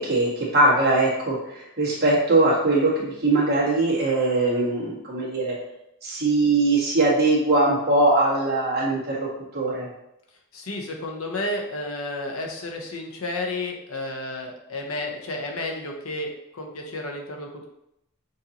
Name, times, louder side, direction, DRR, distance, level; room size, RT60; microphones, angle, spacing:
voice 1, 0.0-5.6 6.0-9.3 9.5-9.9, right 2 dB, 45° right, -6 dB, 1.6 m, -21 dB
voice 2, 10.5-17.7, left 2 dB, 80° left, 2 dB, 0.8 m, -32 dB
6.3 x 2.8 x 2.9 m, 0.82 s
head